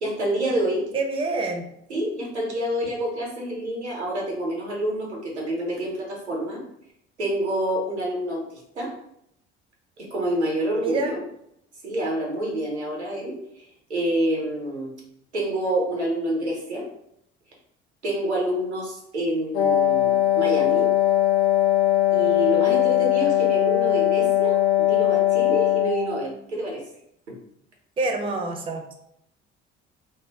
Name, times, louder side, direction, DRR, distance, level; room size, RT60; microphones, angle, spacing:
voice 1, 0.0-0.9 1.9-6.6 7.2-8.4 8.7-8.9 10.0-11.2 11.8-14.9 15.3-16.9 18.0-20.9 22.1-26.9, right 1 dB, 90° right, -2 dB, 0.6 m, -27 dB
voice 2, 0.9-1.6 10.8-11.1 28.0-28.9, right 3 dB, 15° right, 3 dB, 0.4 m, -26 dB
Wind instrument woodwind instrument, 19.5-26.3, left 12 dB, 70° left, 0.5 m, -20 dB
2.0 x 2.0 x 3.4 m, 0.75 s
figure-of-eight pair, 50°, 33 cm